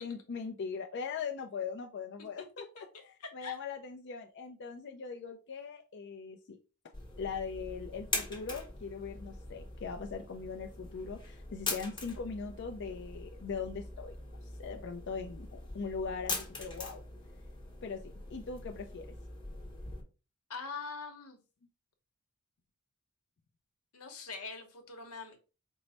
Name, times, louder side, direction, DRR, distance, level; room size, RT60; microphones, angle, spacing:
voice 1, 0.0-2.8 3.3-6.6 7.2-14.1 14.4-17.0 17.8-19.1, left 5 dB, 55° left, 0.4 m, -40 dB
voice 2, 3.2-3.6 20.5-21.4 23.9-25.4, left 4 dB, 90° left, 1.0 m, -43 dB
sound 1, 6.9-20.0, left 2 dB, 20° left, 0.9 m, -42 dB
4.5 x 2.0 x 4.1 m
head